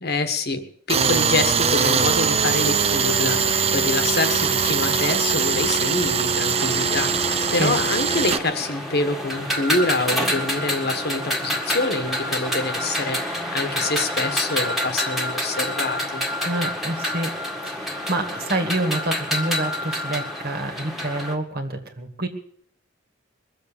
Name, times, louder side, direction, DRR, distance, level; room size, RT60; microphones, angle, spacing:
voice 1, 0.0-16.3, left 2 dB, 55° left, 8 dB, 1.5 m, -26 dB
Tools, 0.9-8.4, right 6 dB, 30° right, 0.6 m, -21 dB
sound 1, 6.6-21.3, left 1 dB, ahead, 1.8 m, -28 dB
voice 2, 16.4-17.4 17.6-22.3, right 2 dB, 50° right, 6 dB, 2.1 m, -27 dB
22.0 x 7.5 x 7.0 m, 0.62 s
head